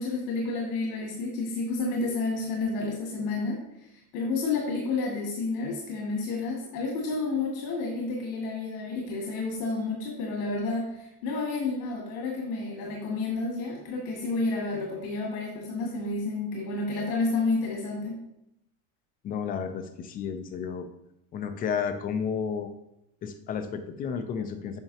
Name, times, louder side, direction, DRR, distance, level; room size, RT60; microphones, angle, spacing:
voice 1, 0.0-18.2, left 3 dB, 80° left, -2 dB, 2.1 m, -30 dB
voice 2, 19.2-20.9 21.3-22.7 23.2-24.8, left 6 dB, 20° left, 8 dB, 0.3 m, -32 dB
9.0 x 5.7 x 2.8 m, 0.80 s
cardioid pair, 150°, 45 cm